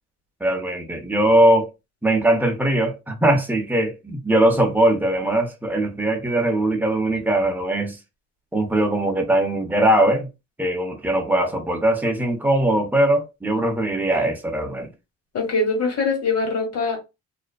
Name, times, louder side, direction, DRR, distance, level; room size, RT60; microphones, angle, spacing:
voice 1, 0.4-1.7 2.0-8.0 8.5-10.3 10.6-14.9, right 1 dB, 5° right, 0.7 m, -20 dB
voice 2, 15.3-17.0, left 3 dB, 55° left, 1.3 m, -22 dB
2.4 x 2.3 x 2.2 m
cardioid pair, 90°, 30 cm